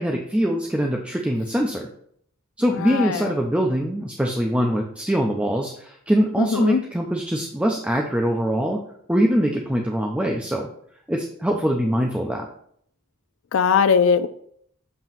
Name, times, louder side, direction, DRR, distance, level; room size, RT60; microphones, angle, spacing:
voice 1, 0.0-1.9 2.6-8.8 9.1-10.7 11.1-12.5, equal, 5° right, 0 dB, 0.5 m, -23 dB
voice 2, 2.8-3.2 6.4-6.8 13.5-14.3, left 6 dB, 65° left, 12 dB, 0.4 m, -19 dB
7.4 x 3.0 x 5.7 m, 0.65 s
head